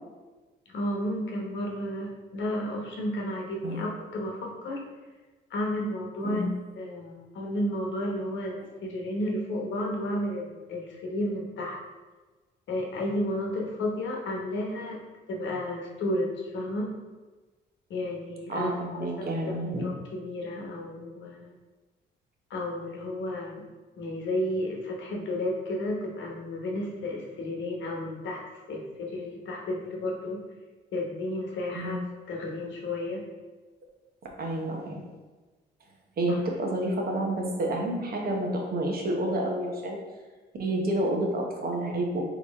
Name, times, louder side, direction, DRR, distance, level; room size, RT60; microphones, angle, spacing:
voice 1, 0.7-4.8 5.5-6.5 6.8-11.8 12.7-15.0 15.3-16.9 17.9-19.3 19.8-21.5 22.5-23.6 24.0-28.4 28.7-30.4 30.9-32.0 32.3-33.2 36.3-36.4, left 1 dB, 70° left, -1 dB, 1.0 m, -32 dB
voice 2, 6.2-6.5 18.5-19.9 31.7-32.0 34.4-35.0 36.2-40.0 40.6-42.3, right 1 dB, 50° right, 1 dB, 0.9 m, -29 dB
4.0 x 3.0 x 3.6 m, 1.3 s
cardioid pair, 90°, 20 cm